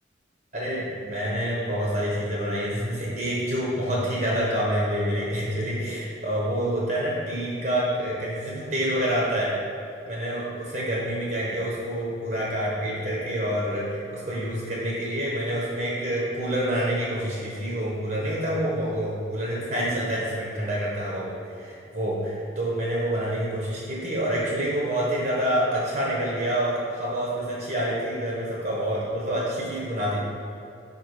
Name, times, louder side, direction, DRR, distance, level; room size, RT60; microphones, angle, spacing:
voice 1, 0.5-9.5 10.0-30.2, equal, 45° right, -5 dB, 1.1 m, -27 dB
5.2 x 5.0 x 4.8 m, 2.7 s
head